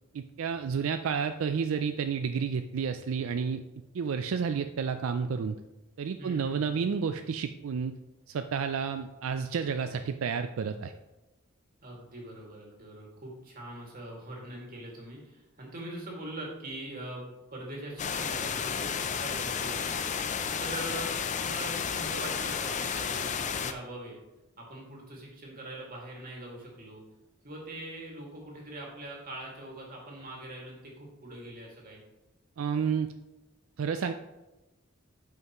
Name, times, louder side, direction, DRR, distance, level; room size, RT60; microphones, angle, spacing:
voice 1, 0.1-3.6 3.9-5.6 6.0-8.0 8.3-10.9 32.6-33.1 33.8-34.1, right 6 dB, 85° right, 8 dB, 0.4 m, -30 dB
voice 2, 6.2-6.9 11.8-20.1 20.6-24.2 24.6-27.0 27.4-32.0, right 1 dB, 45° right, -1 dB, 2.1 m, -42 dB
sound 1, 18.0-23.7, left 6 dB, 35° left, 0.4 m, -32 dB
9.2 x 5.6 x 3.0 m, 1.0 s
head